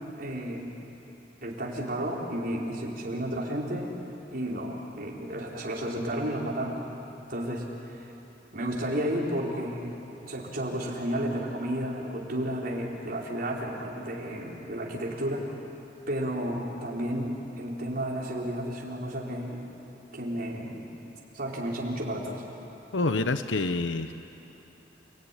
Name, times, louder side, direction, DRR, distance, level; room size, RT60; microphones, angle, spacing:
voice 1, 0.2-0.7 1.4-3.9 4.3-6.8 7.3-8.0 8.5-15.5 16.1-19.6 20.1-20.9 21.3-22.4, right 1 dB, 50° right, -3 dB, 4.6 m, -32 dB
voice 2, 22.9-24.1, left 3 dB, 80° left, 9 dB, 0.9 m, -27 dB
29.5 x 19.5 x 10.0 m, 3.0 s
head